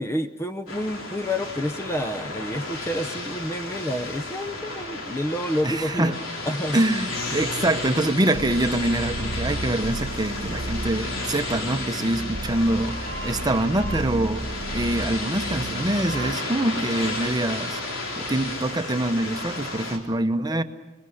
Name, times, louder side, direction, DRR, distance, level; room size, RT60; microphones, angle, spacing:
voice 1, 0.0-6.1 6.5-6.8 7.3-7.4, equal, 15° left, 9 dB, 0.8 m, -29 dB
sound 1, 0.7-20.0, left 2 dB, 75° left, 4.0 m, -33 dB
voice 2, 5.6-6.2 6.7-17.8 18.2-20.6, right 1 dB, 20° right, 8 dB, 1.0 m, -25 dB
sound 2, 8.3-16.3, right 2 dB, 65° right, 1.3 m, -33 dB
29.5 x 21.0 x 6.5 m, 1.1 s
head